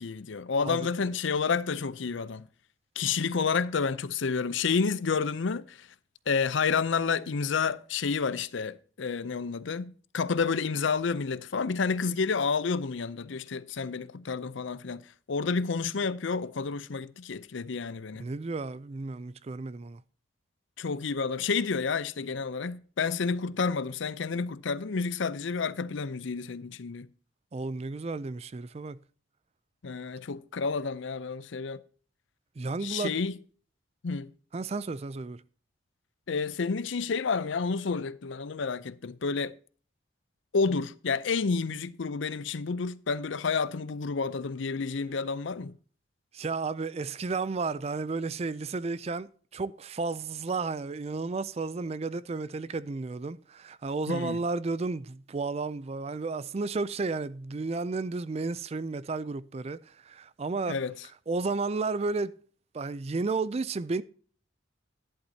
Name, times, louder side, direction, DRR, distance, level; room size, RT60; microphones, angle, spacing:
voice 1, 0.0-2.5 3.0-5.9 6.3-15.0 15.3-18.3 20.8-27.1 29.8-31.8 32.8-33.4 34.0-34.3 36.3-39.5 40.5-45.7 54.1-54.4 60.7-60.9, left 5 dB, 70° left, 0.6 m, -30 dB
voice 2, 0.6-0.9 18.2-20.0 27.5-29.0 32.6-33.1 34.5-35.4 46.3-60.8 61.3-62.4 62.7-64.0, right 3 dB, 30° right, 0.4 m, -32 dB
11.5 x 11.0 x 2.8 m
head